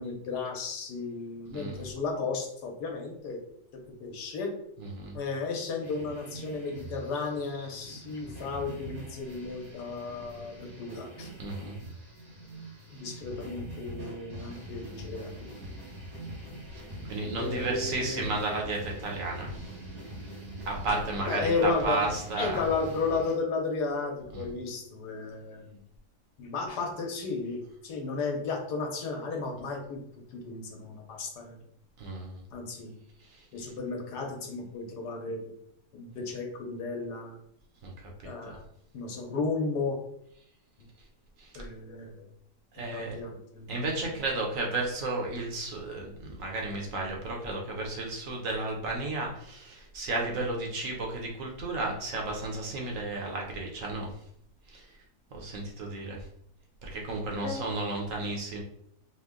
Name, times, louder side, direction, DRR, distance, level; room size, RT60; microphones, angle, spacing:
voice 1, 0.0-3.4 3.7-4.5 5.1-11.3 12.9-15.5 17.3-18.3 21.2-22.1 22.4-25.8 26.4-30.0 30.3-31.6 32.5-32.9 33.5-35.5 35.9-37.4 38.2-38.6 38.9-40.0 41.5-42.3 42.9-43.7 44.0-44.1 57.4-57.7, left 4 dB, 90° left, 2 dB, 1.4 m, -34 dB
voice 2, 1.5-1.9 4.8-5.2 11.4-11.8 13.0-13.1 16.7-16.8 17.1-19.6 20.6-22.6 24.3-24.4 32.0-32.4 33.2-33.5 37.8-38.6 41.4-41.6 42.7-43.2 43.7-54.1 54.7-54.9 55.3-56.3 56.8-58.6, right 2 dB, 60° right, 0 dB, 1.1 m, -33 dB
sound 1, 5.8-23.3, right 1 dB, 80° right, 2.2 m, -43 dB
4.4 x 2.1 x 3.6 m, 0.70 s
omnidirectional pair, 1.7 m